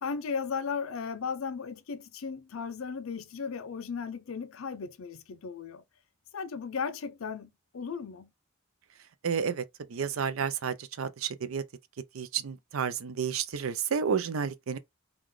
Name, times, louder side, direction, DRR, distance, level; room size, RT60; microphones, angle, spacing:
voice 1, 0.0-5.8 6.3-8.3, left 5 dB, 70° left, 0.5 m, -36 dB
voice 2, 9.2-11.6 12.1-14.8, right 6 dB, 75° right, 0.5 m, -31 dB
3.8 x 2.4 x 3.1 m
head